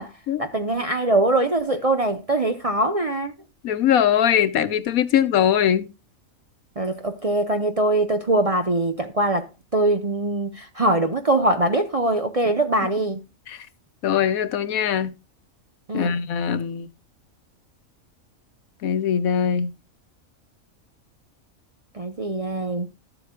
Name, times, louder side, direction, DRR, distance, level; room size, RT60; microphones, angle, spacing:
voice 1, 0.4-3.3 6.8-13.2 15.9-16.2 21.9-22.9, right 2 dB, 35° right, 0.6 m, -22 dB
voice 2, 3.6-5.9 13.5-13.6 14.0-15.1 15.9-16.9 18.8-19.7, left 9 dB, 85° left, 1.3 m, -21 dB
13.5 x 7.9 x 2.2 m
omnidirectional pair, 1.5 m